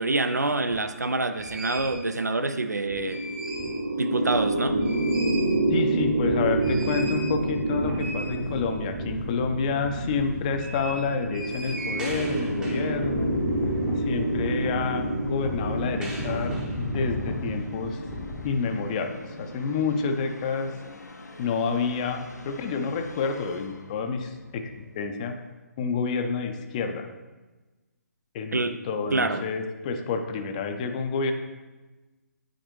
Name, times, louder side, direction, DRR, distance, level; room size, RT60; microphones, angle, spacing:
voice 1, 0.0-3.2 4.0-4.8 28.5-28.8 29.1-29.5, right 2 dB, 80° right, 10 dB, 0.4 m, -26 dB
sound 1, 1.3-2.0 2.8-3.8 4.2-4.3 4.6-18.5, equal, 10° right, 0.7 m, -36 dB
sound 2, 2.4-19.9, right 2 dB, 65° right, 1.0 m, -29 dB
voice 2, 5.7-13.3 14.0-18.0 18.4-19.1 19.4-20.7 21.4-25.4 25.8-27.1 28.3-31.3, left 5 dB, 25° left, 5 dB, 0.5 m, -29 dB
Musical instrument, 11.4-25.1, left 2 dB, 75° left, 0.7 m, -42 dB
9.1 x 3.9 x 3.1 m, 1.2 s
figure-of-eight pair, 135°, 9 cm